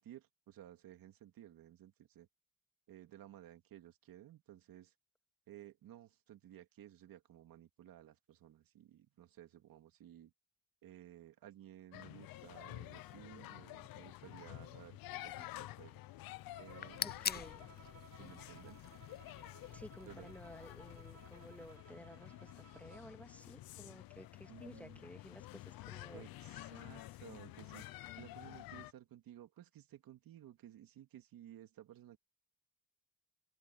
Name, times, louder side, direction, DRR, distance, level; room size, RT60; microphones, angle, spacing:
voice 1, 0.0-2.3 2.9-4.9 5.5-10.3 10.8-16.0 16.6-17.4 18.1-18.9 20.1-20.4 24.5-25.1 26.1-32.2, right 12 dB, 80° right, 2.7 m, -56 dB
sound 1, 11.9-28.9, left 16 dB, 90° left, 1.0 m, -51 dB
Bowed string instrument, 16.5-23.2, right 4 dB, 45° right, 2.9 m, -61 dB
sound 2, 16.6-21.8, left 7 dB, 30° left, 0.4 m, -46 dB
voice 2, 17.0-17.6 19.7-26.2, equal, 5° left, 2.3 m, -54 dB
open air
supercardioid pair, 60°, 34 cm